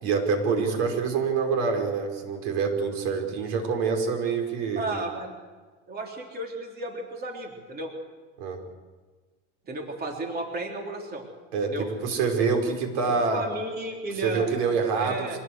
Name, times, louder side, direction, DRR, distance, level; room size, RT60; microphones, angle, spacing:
voice 1, 0.0-4.9 8.4-8.6 11.5-13.4 14.2-15.4, right 5 dB, 75° right, 4 dB, 5.3 m, -26 dB
voice 2, 4.7-5.3 5.9-7.9 9.6-11.3 11.6-11.9 13.3-14.5 14.9-15.4, right 2 dB, 25° right, 2 dB, 3.3 m, -33 dB
25.5 x 18.0 x 8.1 m, 1.4 s
supercardioid pair, 130°, 35 cm